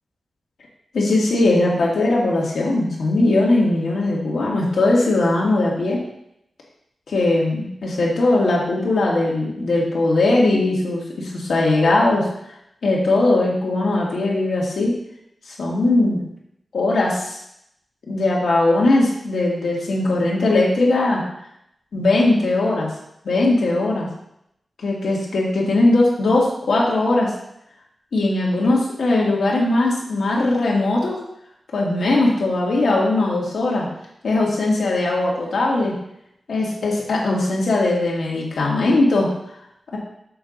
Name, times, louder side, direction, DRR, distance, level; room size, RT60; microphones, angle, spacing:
voice 1, 0.9-6.0 7.1-12.3 12.8-14.9 15.5-16.2 16.7-17.4 18.1-21.2 21.9-22.9 23.2-24.1 24.8-27.3 28.1-31.2 31.7-33.9 34.2-35.9 36.5-39.3, left 2 dB, 80° left, -3 dB, 1.9 m, -19 dB
6.9 x 4.0 x 5.1 m, 0.77 s
wide cardioid pair, 160°, 0 cm